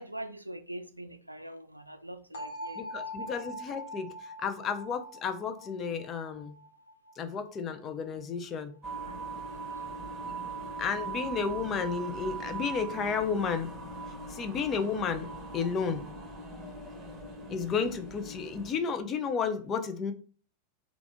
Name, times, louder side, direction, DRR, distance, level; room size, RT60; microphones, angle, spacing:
voice 1, 0.0-3.3 9.1-9.2 9.5-9.9, right 1 dB, 85° right, 0.3 m, -44 dB
sound 1, 2.3-8.2, equal, 60° left, 1.1 m, -43 dB
voice 2, 2.8-6.6 7.2-8.7 10.8-13.7 14.3-15.3 15.5-16.1 17.5-20.1, left 6 dB, 30° left, 0.6 m, -32 dB
sound 2, 8.8-18.7, right 3 dB, 10° right, 1.5 m, -40 dB
3.4 x 2.4 x 3.6 m
figure-of-eight pair, 90°, 0 cm